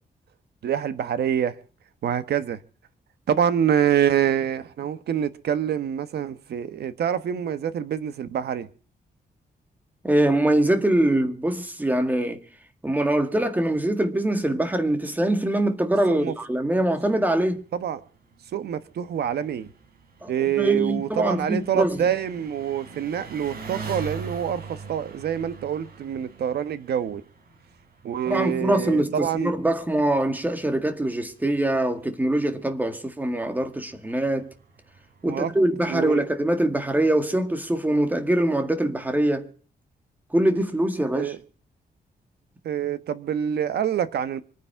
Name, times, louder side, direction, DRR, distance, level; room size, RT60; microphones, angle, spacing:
voice 1, 0.6-1.6 2.0-2.6 3.3-8.7 16.1-16.3 17.7-18.0 18.5-19.7 20.3-27.2 28.0-29.5 35.2-35.5 35.9-36.2 41.2-41.4 42.6-44.4, right 9 dB, 90° right, 1.2 m, -26 dB
voice 2, 10.0-12.4 12.8-17.6 20.2-20.3 20.6-22.1 28.3-34.5 35.2-39.5 40.3-41.3, right 1 dB, 10° right, 1.9 m, -23 dB
Engine, 17.4-35.6, right 4 dB, 65° right, 5.4 m, -44 dB
25.5 x 9.6 x 4.6 m
wide cardioid pair, 145°, 16 cm